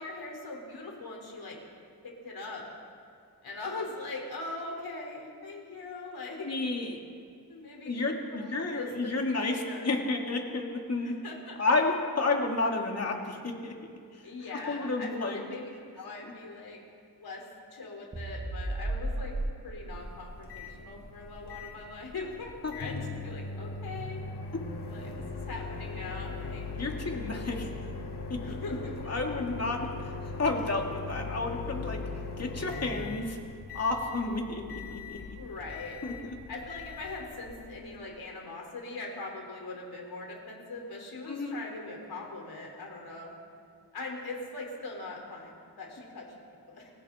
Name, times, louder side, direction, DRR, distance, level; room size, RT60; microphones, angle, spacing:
voice 1, 0.0-1.6 2.0-2.7 3.4-6.5 7.5-8.1 8.3-9.2 9.5-9.9 11.0-11.7 14.2-15.7 15.9-16.8 17.2-17.4 17.7-19.4 19.6-24.2 24.9-26.7 28.4-29.3 35.4-36.0 36.5-43.3 43.9-46.3 46.7-46.9, left 3 dB, 70° left, -1 dB, 5.5 m, -41 dB
voice 2, 6.5-7.0 7.8-11.1 11.6-13.7 14.7-15.4 16.2-16.3 22.6-22.7 24.5-24.6 26.8-27.7 28.3-28.4 29.1-30.1 30.4-32.0 32.4-33.4 33.7-35.2 36.0-36.4 41.3-41.6, left 3 dB, 40° left, 1 dB, 2.8 m, -31 dB
sound 1, 18.1-22.6, right 1 dB, 20° right, 2.3 m, -37 dB
Microwave oven, 19.9-37.9, left 3 dB, 90° left, 4.3 m, -40 dB
30.0 x 23.0 x 4.5 m, 2.3 s
wide cardioid pair, 175°, 39 cm